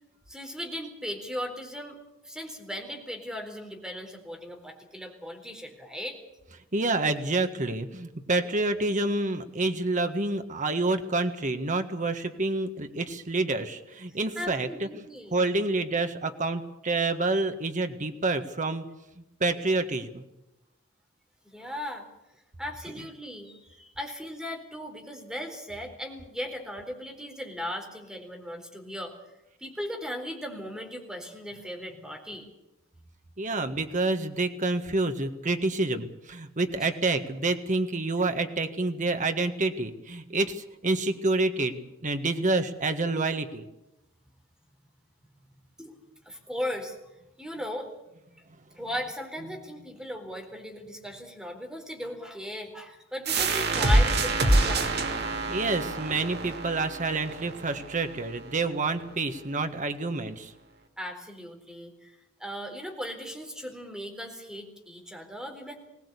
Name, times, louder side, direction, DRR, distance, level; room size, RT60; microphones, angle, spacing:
voice 1, 0.3-2.0 2.2-6.2 14.1-15.4 21.4-22.1 22.6-29.1 29.6-32.5 45.8-46.0 46.2-47.0 47.4-47.9 48.7-54.9 61.0-62.1 62.4-65.7, equal, 5° right, 3 dB, 4.0 m, -37 dB
voice 2, 6.7-15.0 15.3-18.8 19.4-20.2 33.4-43.7 55.5-60.5, right 2 dB, 40° right, 7 dB, 1.6 m, -28 dB
sound 1, 53.3-58.7, right 2 dB, 55° right, 2.6 m, -26 dB
21.5 x 18.0 x 8.4 m, 0.94 s
head